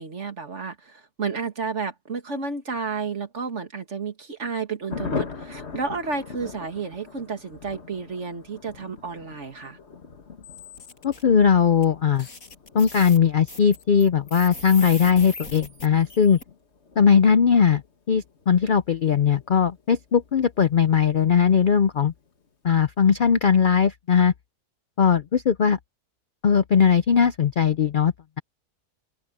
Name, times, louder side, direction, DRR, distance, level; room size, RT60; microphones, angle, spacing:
voice 1, 0.0-9.8, right 5 dB, 50° right, 2.4 m, -31 dB
Thunder, 4.9-21.0 21.3-21.4 21.7-21.8 22.1-22.5, left 4 dB, 45° left, 2.0 m, -40 dB
sound 1, 10.4-11.2 11.8-11.9 12.2-16.4, left 2 dB, 65° left, 5.9 m, -40 dB
voice 2, 11.0-12.3 12.7-16.4 17.0-17.8 18.1-22.1 22.6-24.3 25.0-25.8 26.4-28.4, left 7 dB, 80° left, 0.4 m, -19 dB
open air
omnidirectional pair, 1.6 m